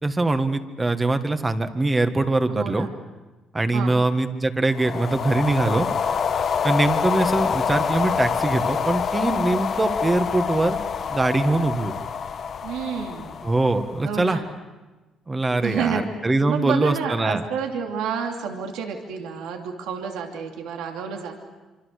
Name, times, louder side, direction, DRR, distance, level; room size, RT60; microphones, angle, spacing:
voice 1, 0.0-2.9 3.5-5.9 6.6-10.8 11.1-11.9 13.4-14.4 15.3-17.4, right 2 dB, 20° right, 8 dB, 1.8 m, -22 dB
voice 2, 2.5-2.9 3.7-4.0 12.6-13.4 14.0-14.5 15.6-21.3, right 6 dB, 85° right, 2 dB, 2.8 m, -29 dB
sound 1, 4.7-14.2, left 7 dB, 55° left, 1.4 m, -26 dB
26.0 x 25.0 x 6.7 m, 1.2 s
cardioid pair, 90°, 0 cm